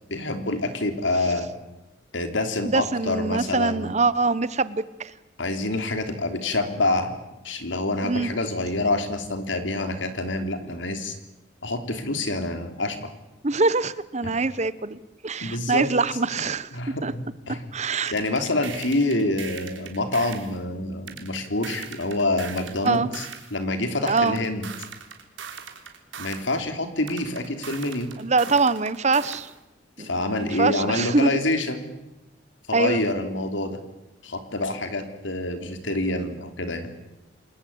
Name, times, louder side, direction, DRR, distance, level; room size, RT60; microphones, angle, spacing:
voice 1, 0.1-1.5 2.1-3.9 5.4-7.1 7.4-11.2 11.6-13.0 14.2-14.3 15.4-15.9 16.7-17.2 17.5-17.6 18.1-23.2 23.5-24.7 26.2-28.1 30.0-31.8 32.7-33.8 34.2-36.9, left 2 dB, 80° left, 7 dB, 3.4 m, -27 dB
voice 2, 2.6-5.1 8.0-8.3 13.4-16.7 17.0-17.1 17.7-18.1 22.8-23.1 24.0-24.4 28.2-29.5 30.0-31.3 32.7-33.0, right 3 dB, 35° right, 16 dB, 1.0 m, -24 dB
sound 1, 18.1-20.5 21.1-23.5 24.1-26.5 27.1-29.5, right 7 dB, 85° right, 3.5 m, -39 dB
28.5 x 21.0 x 8.7 m, 0.96 s
head